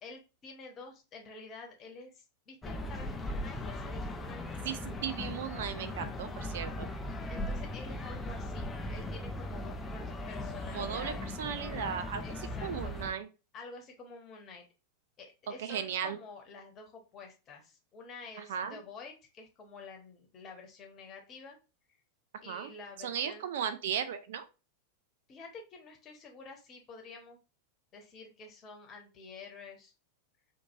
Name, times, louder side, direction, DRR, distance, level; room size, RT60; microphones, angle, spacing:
voice 1, 0.0-4.5 7.3-11.3 12.2-13.0 13.5-14.6 15.2-21.6 22.4-23.5 25.3-27.4 27.9-29.9, left 4 dB, 30° left, 2 dB, 1.1 m, -49 dB
sound 1, 2.6-13.1, left 1 dB, 15° left, 0.5 m, -38 dB
voice 2, 4.6-6.9 10.7-12.2 12.6-13.3 15.6-16.2 18.4-18.8 22.5-22.7 23.0-24.4, right 8 dB, 55° right, 11 dB, 0.4 m, -36 dB
4.3 x 2.6 x 2.7 m, 0.30 s
figure-of-eight pair, 90°, 0 cm